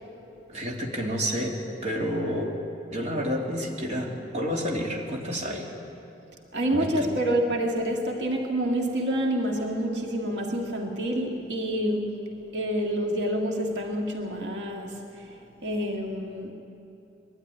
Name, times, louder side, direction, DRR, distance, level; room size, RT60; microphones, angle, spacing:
voice 1, 0.5-1.6 1.8-2.5 2.9-5.7 6.7-7.1, equal, 40° right, -1 dB, 2.6 m, -29 dB
voice 2, 6.5-12.3 12.5-16.5, right 1 dB, 85° right, 1 dB, 1.9 m, -28 dB
21.5 x 12.5 x 9.8 m, 2.8 s
head